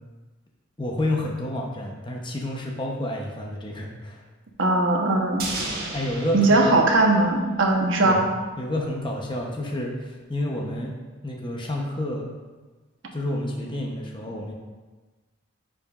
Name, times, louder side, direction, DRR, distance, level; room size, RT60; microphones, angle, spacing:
voice 1, 0.8-4.2 5.9-6.5 8.0-8.3 8.6-12.3 13.1-14.5, left 1 dB, 25° left, -1 dB, 0.7 m, -29 dB
voice 2, 4.6-5.5 6.3-8.2, right 2 dB, 75° right, 2 dB, 1.0 m, -19 dB
sound 1, 5.4-7.8 8.1-8.2, right 2 dB, 50° right, 1.2 m, -34 dB
10.0 x 5.0 x 2.4 m, 1.3 s
head